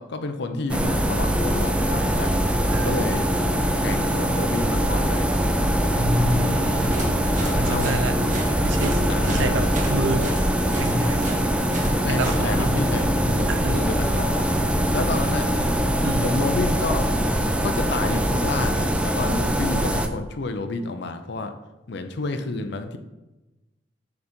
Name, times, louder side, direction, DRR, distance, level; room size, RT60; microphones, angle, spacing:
voice 1, 0.0-2.3 2.8-3.3 3.8-5.3 7.4-7.9 9.1-9.7 12.0-14.5 14.9-15.5 16.2-17.1 17.6-21.5 21.9-23.0, left 3 dB, 60° left, 7 dB, 0.6 m, -30 dB
sound 1, 0.7-20.1, equal, 5° right, 0.4 m, -23 dB
sound 2, 0.8-3.0 3.4-10.6 11.1-16.1, equal, 45° left, 1.1 m, -31 dB
voice 2, 2.7-3.0 5.9-7.1 7.6-8.2 8.6-10.3 10.8-11.3 12.1-13.0 13.5-13.9 16.0-16.7, right 1 dB, 80° right, 8 dB, 0.7 m, -27 dB
sound 3, 6.7-12.4, right 2 dB, 40° right, 1.1 m, -34 dB
7.0 x 4.0 x 5.2 m, 1.0 s
head